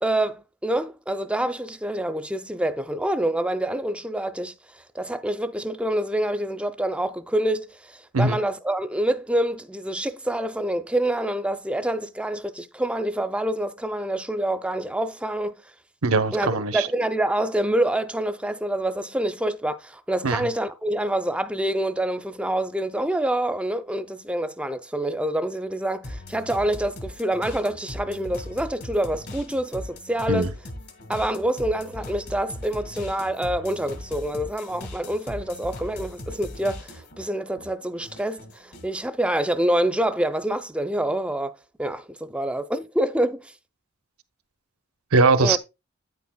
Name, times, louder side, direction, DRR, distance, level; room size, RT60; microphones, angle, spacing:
voice 1, 0.0-15.6 16.3-30.5 31.1-43.5 45.4-45.6, right 1 dB, 5° right, 0.5 m, -26 dB
voice 2, 16.0-16.9 20.2-20.4 30.3-30.5 45.1-45.6, right 3 dB, 90° right, 0.8 m, -20 dB
sound 1, 26.0-37.2 37.6-39.0, left 1 dB, 55° left, 1.7 m, -39 dB
9.2 x 8.2 x 2.2 m
head